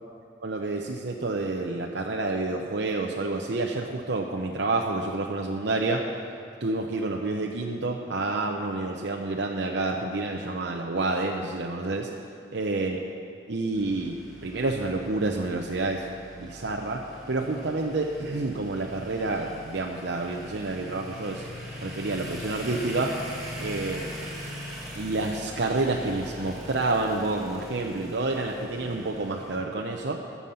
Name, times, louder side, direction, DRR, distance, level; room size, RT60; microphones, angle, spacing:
voice 1, 0.4-6.1 6.6-12.1 12.5-13.0 13.5-16.1 16.3-21.5 21.8-23.3 23.6-24.1 25.0-30.3, right 2 dB, 70° right, 0 dB, 0.8 m, -29 dB
sound 1, 13.7-29.6, equal, 5° right, 2.7 m, -41 dB
21.0 x 7.2 x 5.6 m, 2.5 s
head